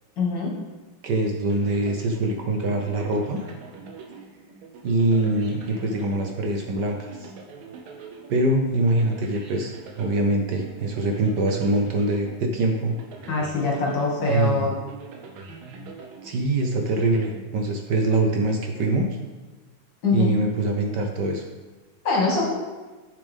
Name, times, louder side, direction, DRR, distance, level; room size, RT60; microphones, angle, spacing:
voice 1, 0.2-0.5 13.3-14.7 20.0-20.3 22.0-22.5, left 3 dB, 60° left, -3 dB, 2.4 m, -23 dB
voice 2, 1.0-3.4 4.8-7.3 8.3-13.0 14.2-14.7 16.2-19.2 20.1-21.4, right 2 dB, 65° right, 3 dB, 1.3 m, -24 dB
sound 1, 1.5-18.1, right 4 dB, 85° right, 1.8 m, -43 dB
8.4 x 6.9 x 3.5 m, 1.2 s
omnidirectional pair, 2.3 m